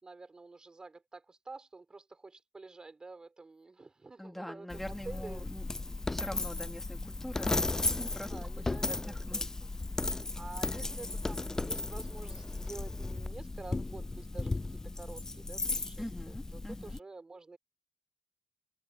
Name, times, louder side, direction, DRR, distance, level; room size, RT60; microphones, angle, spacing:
voice 1, 0.0-5.5 8.3-9.5 10.3-17.6, right 3 dB, 40° right, 4.1 m, -49 dB
voice 2, 4.2-5.7 6.1-9.5 10.6-10.8 16.0-17.0, left 1 dB, 10° left, 3.1 m, -44 dB
Coin (dropping), 4.7-17.0, left 2 dB, 25° left, 0.4 m, -35 dB
cardioid pair, 75°, 2 cm